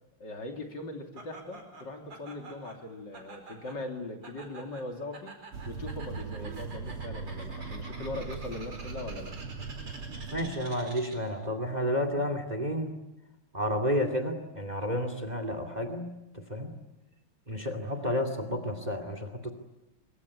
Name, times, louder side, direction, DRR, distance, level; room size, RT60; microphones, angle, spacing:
voice 1, 0.2-5.3 5.7-9.3, left 2 dB, 55° left, 3 dB, 3.6 m, -40 dB
Laughter, 1.2-11.4, right 3 dB, 55° right, 5.3 m, -48 dB
sound 1, 5.5-10.6, right 5 dB, 85° right, 2.5 m, -39 dB
voice 2, 10.3-12.9 13.5-16.1 16.5-16.7 17.5-19.5, equal, 20° right, 9 dB, 2.4 m, -31 dB
25.5 x 23.5 x 9.8 m, 0.94 s
omnidirectional pair, 2.4 m